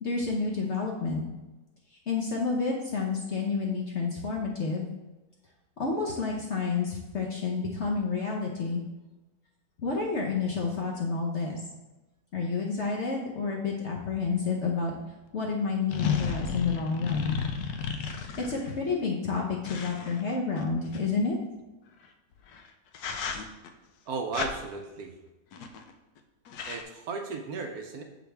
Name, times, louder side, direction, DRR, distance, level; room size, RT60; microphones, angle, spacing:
voice 1, 0.0-1.2 2.1-4.9 5.8-8.8 9.8-11.6 12.3-14.9 15.3-17.4 18.4-21.4, left 4 dB, 55° left, -1 dB, 0.9 m, -29 dB
sound 1, 14.9-15.0 15.9-18.7 19.6-21.0 22.4-22.6 22.9-23.7 24.3-24.5 25.5-25.9 26.2-26.3 26.5-26.8, left 6 dB, 70° left, 1.1 m, -33 dB
voice 2, 24.1-25.1 26.7-28.0, right 4 dB, 65° right, 4 dB, 1.0 m, -35 dB
6.9 x 5.1 x 3.3 m, 1.1 s
omnidirectional pair, 1.9 m